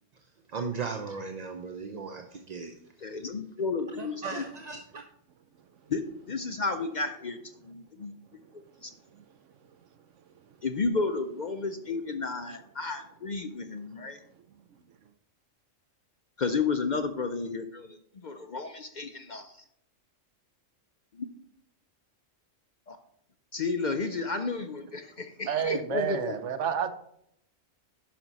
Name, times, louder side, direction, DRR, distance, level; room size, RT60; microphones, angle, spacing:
voice 1, 0.5-2.8 4.0-5.0, right 5 dB, 45° right, 0.5 m, -37 dB
voice 2, 3.0-4.4 5.9-6.0 6.3-8.1 8.8-8.9 10.6-14.2 16.4-19.6 21.1-21.3 22.9-23.0 23.5-26.3, left 4 dB, 55° left, 0.5 m, -32 dB
voice 3, 25.5-26.9, right 8 dB, 70° right, 0.9 m, -30 dB
10.5 x 5.9 x 4.0 m
omnidirectional pair, 1.4 m